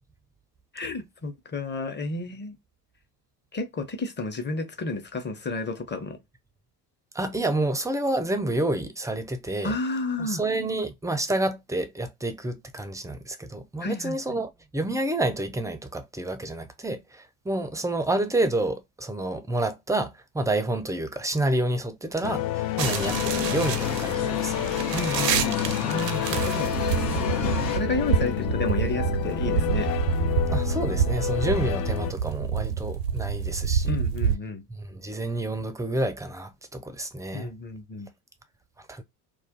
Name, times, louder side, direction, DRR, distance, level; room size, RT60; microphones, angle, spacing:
voice 1, 0.7-2.6 3.5-6.2 9.6-10.4 13.8-14.2 24.9-26.7 27.1-27.3 27.7-29.9 33.9-34.6 37.3-38.1, left 3 dB, 20° left, 0.9 m, -31 dB
voice 2, 7.1-9.7 10.2-24.5 30.5-34.0 34.7-37.5 38.9-39.0, right 1 dB, 5° right, 0.5 m, -29 dB
sound 1, 22.2-32.1, left 14 dB, 50° left, 0.6 m, -30 dB
sound 2, 22.8-27.8, left 5 dB, 85° left, 1.2 m, -31 dB
sound 3, 22.8-34.4, right 7 dB, 85° right, 0.5 m, -28 dB
2.4 x 2.2 x 3.7 m
hypercardioid pair, 65°, 47 cm